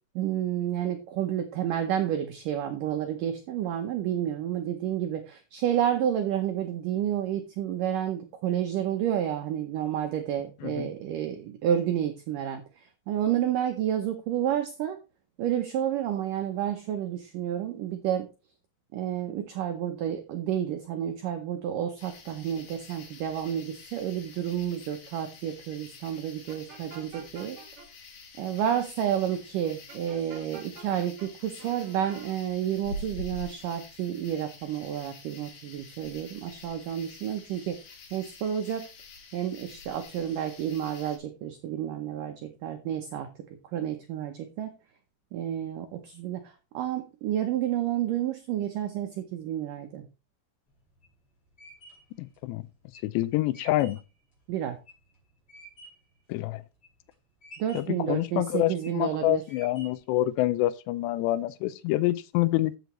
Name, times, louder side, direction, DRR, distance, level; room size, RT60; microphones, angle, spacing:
voice 1, 0.2-15.0 15.4-18.3 18.9-27.6 28.4-37.8 38.1-38.9 39.3-43.3 43.7-44.7 45.3-50.0 54.5-54.8 57.6-59.4, right 10 dB, 80° right, 1.9 m, -30 dB
sound 1, 22.0-41.2, left 2 dB, 65° left, 4.2 m, -47 dB
sound 2, 26.5-27.9 29.9-31.3 31.6-32.4, right 5 dB, 45° right, 2.1 m, -47 dB
sound 3, 50.7-56.1 56.6-57.1 57.4-58.1 58.6-59.1 59.5-60.2, right 1 dB, 25° left, 5.5 m, -51 dB
voice 2, 52.2-52.6 53.0-54.0 56.3-56.6 57.7-62.8, left 16 dB, 85° left, 2.8 m, -27 dB
14.0 x 6.9 x 3.0 m
omnidirectional pair, 4.9 m